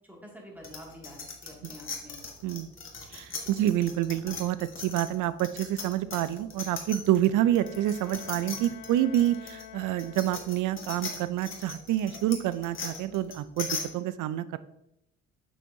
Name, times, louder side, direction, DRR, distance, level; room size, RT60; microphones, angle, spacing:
voice 1, 0.1-2.2 3.3-3.6, equal, 5° right, -2 dB, 2.2 m, -48 dB
sound 1, 0.6-7.3 7.6-13.8, left 4 dB, 40° left, 1.6 m, -38 dB
voice 2, 3.1-13.7 13.9-14.6, right 13 dB, 85° right, 15 dB, 0.5 m, -28 dB
Bowed string instrument, 7.2-10.7, left 10 dB, 85° left, 0.5 m, -48 dB
7.1 x 6.1 x 2.7 m, 0.82 s
cardioid pair, 90°, 30 cm